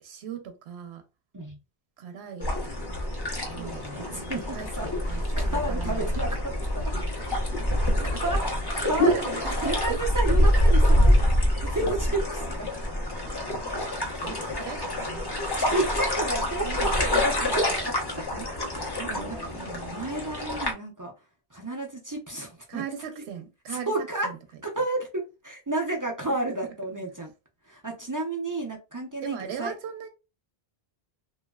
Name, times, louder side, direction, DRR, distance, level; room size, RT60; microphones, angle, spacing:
voice 1, 0.0-1.0 2.0-2.5 3.3-6.2 6.5-6.6 7.3-7.6 8.0-8.2 8.7-9.6 9.9-10.0 14.2-15.2 16.6-17.0 17.4-17.6 18.3-18.7 18.9-20.0 22.7-24.4 24.8-24.9 26.5-26.7 29.2-30.1, right 7 dB, 85° right, 0.9 m, -39 dB
sound 1, 2.4-20.7, left 1 dB, 25° left, 0.6 m, -26 dB
voice 2, 3.6-6.4 6.8-6.9 7.8-7.9 8.2-9.2 9.6-12.7 14.2-14.6 15.6-17.9 18.8-19.5 19.9-21.1 21.5-22.8 23.7-24.3 24.6-27.3 27.7-29.7, right 2 dB, 25° right, 0.4 m, -32 dB
sound 2, 6.0-6.1 6.9-10.0 10.3-10.8 11.1-11.2 11.5-12.2 12.9-13.7 14.3-14.5, equal, 70° left, 0.9 m, -31 dB
3.0 x 2.5 x 2.2 m
omnidirectional pair, 1.1 m